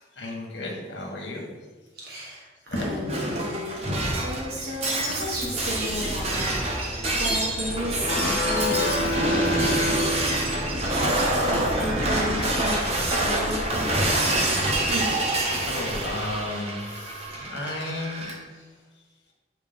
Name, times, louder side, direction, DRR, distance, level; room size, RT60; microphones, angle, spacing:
voice 1, 0.2-1.4 2.7-2.8 11.4-11.5 14.1-14.4 14.7-15.3 15.6-18.3, left 2 dB, 90° left, -1 dB, 1.4 m, -34 dB
voice 2, 1.9-10.1 10.9-13.9 14.9-15.1 17.3-17.6 18.5-18.6, equal, 60° right, -5 dB, 1.2 m, -34 dB
Shatter, 2.7-18.3, right 1 dB, 35° right, 0.8 m, -27 dB
sound 1, 5.3-13.7, equal, 5° left, 0.5 m, -35 dB
sound 2, 8.0-10.9, left 1 dB, 60° left, 0.7 m, -27 dB
8.4 x 3.1 x 3.5 m, 1.3 s
head